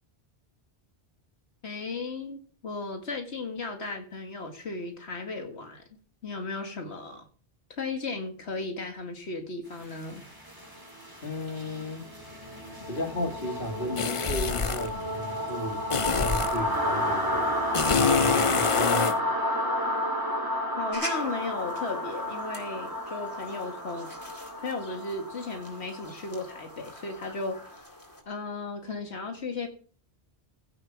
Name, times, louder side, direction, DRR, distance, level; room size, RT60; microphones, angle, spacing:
voice 1, 1.6-5.8 6.2-7.3 7.7-10.2 20.8-24.1 24.6-27.9 28.3-29.7, left 3 dB, 90° left, 2.2 m, -35 dB
sound 1, 9.8-27.6, equal, 20° right, 4.0 m, -32 dB
voice 2, 11.2-12.0 12.9-17.6 17.9-19.1, left 1 dB, 55° left, 2.8 m, -34 dB
sound 2, 14.0-14.9 15.9-16.6 17.7-19.2, left 6 dB, 40° left, 0.6 m, -26 dB
sound 3, 20.9-28.2, equal, 20° left, 3.8 m, -45 dB
16.0 x 7.8 x 5.9 m
omnidirectional pair, 1.1 m